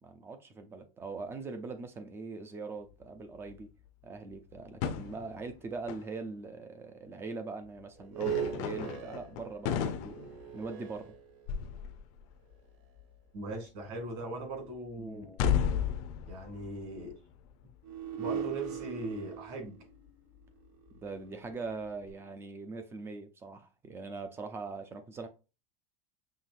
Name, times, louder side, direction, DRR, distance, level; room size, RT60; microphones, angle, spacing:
voice 1, 0.0-3.7 4.0-10.2 10.5-11.1 15.0-15.3 21.0-25.3, right 4 dB, 15° right, 0.4 m, -41 dB
sound 1, 3.0-3.1 3.4-3.9 4.3-6.1 7.6-7.7 8.1-11.1 11.5-12.6 12.8-13.1 14.4-14.8 15.2-18.1 18.6-18.8 19.5-19.6 20.1-20.2 20.4-20.5 20.9-21.0 22.1-22.2, left 8 dB, 40° left, 0.6 m, -35 dB
sound 2, 8.0-11.8 12.5-12.6 17.8-22.1, right 9 dB, 75° right, 1.2 m, -40 dB
voice 2, 13.3-15.4 16.3-17.1 18.2-19.7, right 2 dB, 50° right, 2.1 m, -39 dB
5.7 x 3.0 x 2.5 m
supercardioid pair, 170°, 17 cm